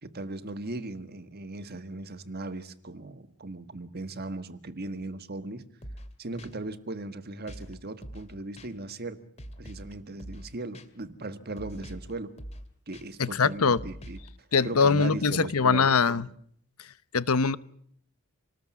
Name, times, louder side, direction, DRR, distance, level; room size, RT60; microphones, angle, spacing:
voice 1, 0.0-5.7 6.2-9.2 9.6-12.3 12.9-14.2 14.6-15.9, right 2 dB, 45° right, 11 dB, 1.4 m, -38 dB
sound 1, 5.8-6.1 6.4-6.5 7.5-7.7 8.0-8.3 8.6-8.7 9.4-9.9 10.2-10.5 10.7-10.9 11.6-12.1 12.4-12.6 12.9-13.0 13.7-14.3, equal, 30° left, 2.4 m, -43 dB
voice 2, 13.2-13.8 14.5-16.3 17.1-17.6, left 5 dB, 80° left, 16 dB, 1.0 m, -22 dB
27.0 x 19.5 x 7.2 m, 0.65 s
head